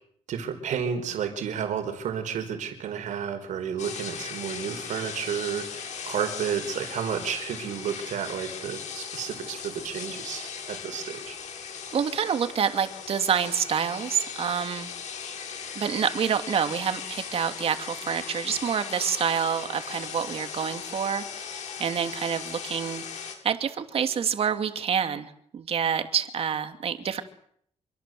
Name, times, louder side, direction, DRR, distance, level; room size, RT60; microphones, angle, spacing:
voice 1, 0.3-11.4, right 8 dB, 90° right, 7 dB, 4.7 m, -31 dB
sound 1, 3.8-23.3, left 7 dB, 80° left, 7.6 m, -38 dB
voice 2, 11.9-14.9 15.8-23.0 23.4-27.2, right 7 dB, 55° right, 8 dB, 2.7 m, -27 dB
27.0 x 24.5 x 7.9 m, 0.66 s
wide cardioid pair, 160°, 12 cm